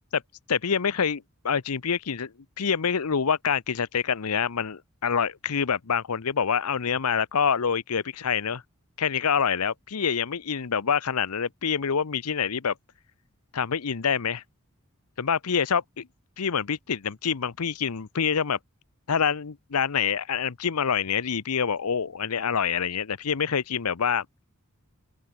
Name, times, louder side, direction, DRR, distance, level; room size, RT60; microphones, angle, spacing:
voice 1, 0.5-8.6 9.0-12.7 13.5-14.4 15.2-16.1 16.4-18.6 19.1-24.3, left 7 dB, 85° left, 0.8 m, -26 dB
open air
head